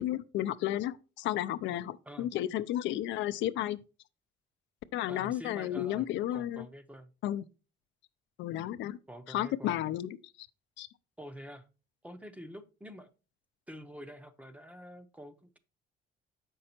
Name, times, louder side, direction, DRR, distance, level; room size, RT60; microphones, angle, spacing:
voice 1, 0.0-3.8 4.9-6.7 7.2-7.4 8.4-9.0 9.3-10.1 10.4-10.5 10.8-10.9, left 13 dB, 75° left, 0.5 m, -32 dB
voice 2, 5.1-7.1 9.1-9.8 11.2-11.7 12.0-13.1 13.7-15.6, equal, 5° right, 0.6 m, -47 dB
7.6 x 5.4 x 4.3 m
cardioid pair, 155°, 20 cm